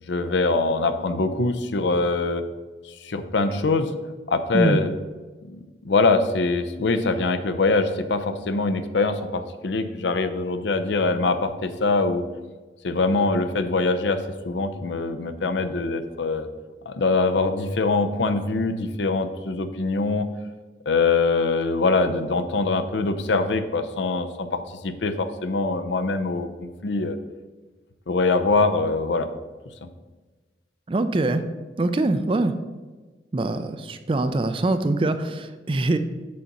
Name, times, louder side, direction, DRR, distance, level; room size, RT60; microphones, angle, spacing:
voice 1, 0.1-2.4 2.9-3.9 4.3-4.9 5.4-12.2 12.8-14.2 14.4-16.5 16.9-20.3 20.9-27.2 28.1-29.3 29.8-29.9, left 3 dB, 80° left, 10 dB, 0.6 m, -23 dB
voice 2, 30.9-31.4 31.8-32.5 33.3-36.0, right 2 dB, 30° right, 10 dB, 0.4 m, -23 dB
6.4 x 4.0 x 5.8 m, 1.3 s
head